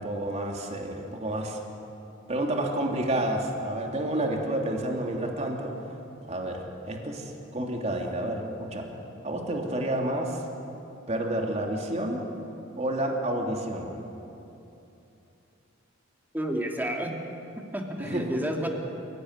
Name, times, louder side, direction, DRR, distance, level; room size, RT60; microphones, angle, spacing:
voice 1, 0.0-1.6 2.3-5.7 6.3-8.9 9.2-10.4 11.1-12.3 12.8-13.9 18.0-18.3, right 1 dB, 35° right, 1 dB, 3.0 m, -30 dB
voice 2, 16.3-17.1 17.7-18.7, equal, 10° right, 1 dB, 2.8 m, -30 dB
29.0 x 17.5 x 9.8 m, 2.9 s
head